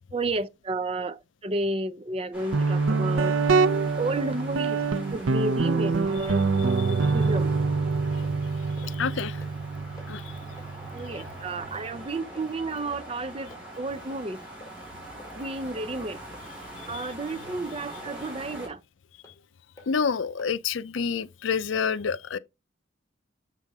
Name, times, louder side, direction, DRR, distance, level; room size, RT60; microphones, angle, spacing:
voice 1, 0.1-3.4 4.0-4.8 5.1-7.5 10.9-14.4 15.3-16.2 16.9-18.8, right 2 dB, 30° right, 0.6 m, -32 dB
sound 1, 2.3-18.7, right 1 dB, 5° right, 4.0 m, -43 dB
Guitar, 2.5-12.0, right 4 dB, 90° right, 0.6 m, -26 dB
voice 2, 6.8-7.1 8.9-9.4 10.1-10.2 16.8-17.0 19.9-22.4, left 6 dB, 75° left, 0.5 m, -28 dB
sound 2, 7.6-7.8 8.2-8.4 8.8-9.0 9.3-9.7 10.0-10.1 10.5-10.7 11.1-11.3 11.7-11.9 12.4-12.5 12.9-13.1 13.5-13.6 14.1-14.2 14.6-14.8 15.2-15.4 15.8-15.9 16.3-16.5 16.9-17.1 17.5-17.6 18.1-18.2 18.6-18.8 19.2-19.4 19.8-19.9 20.4-20.5 21.0-21.1, left 1 dB, 15° left, 2.3 m, -50 dB
7.4 x 5.6 x 3.5 m
head